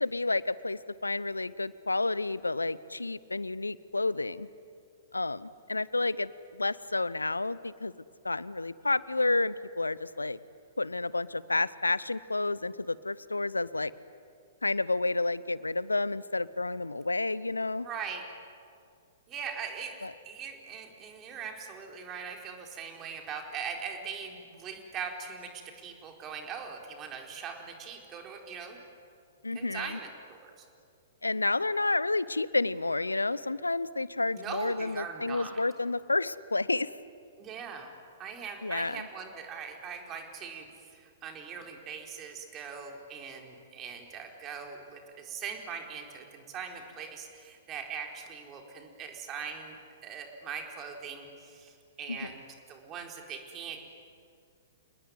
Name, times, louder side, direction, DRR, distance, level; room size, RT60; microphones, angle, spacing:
voice 1, 0.0-4.5 5.1-7.9 8.2-10.4 10.8-13.9 14.6-17.9 20.0-20.1 29.4-30.0 31.2-36.9 38.6-39.1 52.1-52.3, left 2 dB, 80° left, 19 dB, 0.7 m, -30 dB
voice 2, 17.8-18.2 19.3-28.8 29.5-30.6 34.3-35.6 37.4-37.9 38.2-49.8 50.0-53.8, right 6 dB, 25° right, 2 dB, 4.3 m, -41 dB
28.5 x 20.0 x 9.8 m, 2.3 s
figure-of-eight pair, 110°, 0 cm